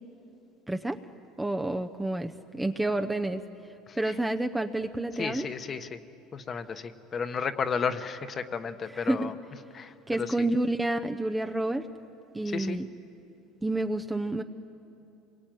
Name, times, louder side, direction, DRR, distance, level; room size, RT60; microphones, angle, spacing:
voice 1, 0.7-1.0 1.4-3.4 3.9-5.5 8.9-9.3 10.1-11.9 12.3-12.9 13.6-14.4, right 2 dB, 5° right, 6 dB, 0.7 m, -29 dB
voice 2, 5.2-6.0 6.3-9.3 9.7-10.5 12.5-12.8, left 6 dB, 30° left, 10 dB, 1.1 m, -33 dB
26.5 x 22.5 x 9.2 m, 2.9 s
cardioid pair, 140°, 0 cm